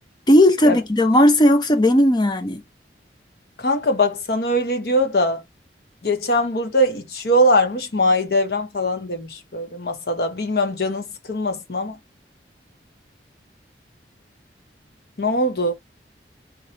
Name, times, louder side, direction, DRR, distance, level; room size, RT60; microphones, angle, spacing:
voice 1, 0.3-2.6, left 1 dB, 25° left, 0.6 m, -16 dB
voice 2, 3.6-5.4 6.0-12.0 15.2-15.7, left 1 dB, 55° left, 0.9 m, -21 dB
3.8 x 2.9 x 2.9 m
head